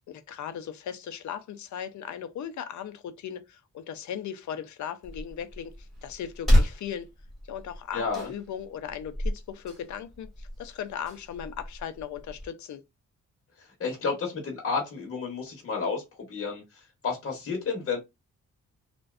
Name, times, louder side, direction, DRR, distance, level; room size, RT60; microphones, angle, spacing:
voice 1, 0.1-7.1 7.5-12.8, left 9 dB, 65° left, 0.5 m, -38 dB
sound 1, 5.0-12.5, equal, ahead, 1.0 m, -30 dB
voice 2, 7.9-8.3 13.6-16.0 16.3-18.0, left 5 dB, 45° left, 0.8 m, -31 dB
2.5 x 2.1 x 2.3 m
wide cardioid pair, 130°, 31 cm